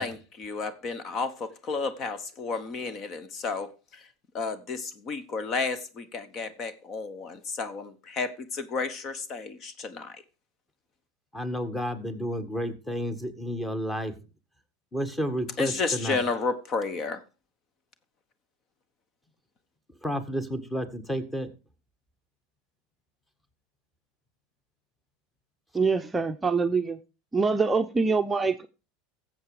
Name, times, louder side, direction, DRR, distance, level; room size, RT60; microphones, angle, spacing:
voice 1, 0.0-4.1 4.3-10.2 15.6-17.2, left 4 dB, 40° left, 1.2 m, -32 dB
voice 2, 11.3-14.1 14.9-16.2 20.0-21.5, equal, 10° left, 1.7 m, -31 dB
voice 3, 25.7-27.0 27.3-28.7, right 4 dB, 15° right, 0.7 m, -24 dB
14.0 x 7.5 x 4.9 m
supercardioid pair, 115°, 0 cm